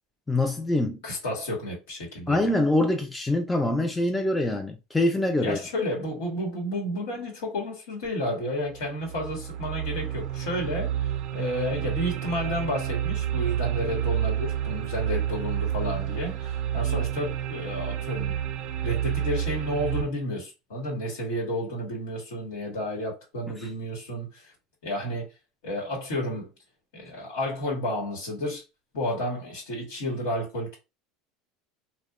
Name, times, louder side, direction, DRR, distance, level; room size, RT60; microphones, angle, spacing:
voice 1, 0.3-1.0 2.3-5.6 23.6-23.7, left 1 dB, 10° left, 0.3 m, -24 dB
voice 2, 1.0-2.5 5.4-18.5 18.8-24.5 24.8-25.3 25.6-26.5 26.9-28.6 28.9-30.7, equal, 90° left, 1.1 m, -31 dB
sound 1, 8.0-8.1 8.7-20.0, right 10 dB, 60° right, 0.4 m, -29 dB
2.7 x 2.1 x 2.3 m
supercardioid pair, 120°, 0 cm